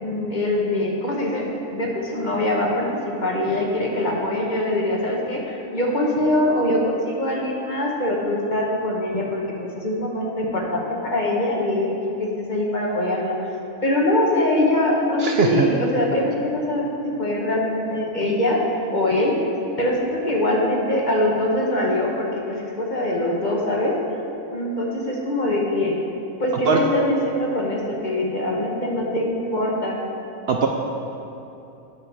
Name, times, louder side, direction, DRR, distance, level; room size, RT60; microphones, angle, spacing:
voice 1, 0.0-13.5 13.8-18.6 18.9-19.3 19.8-24.0 24.5-26.0 26.4-30.0, left 1 dB, 40° left, -2 dB, 1.2 m, -23 dB
voice 2, 15.2-15.7 26.7-26.8 30.5-30.7, right 5 dB, 60° right, 2 dB, 0.8 m, -19 dB
8.8 x 5.7 x 6.1 m, 2.8 s
omnidirectional pair, 1.4 m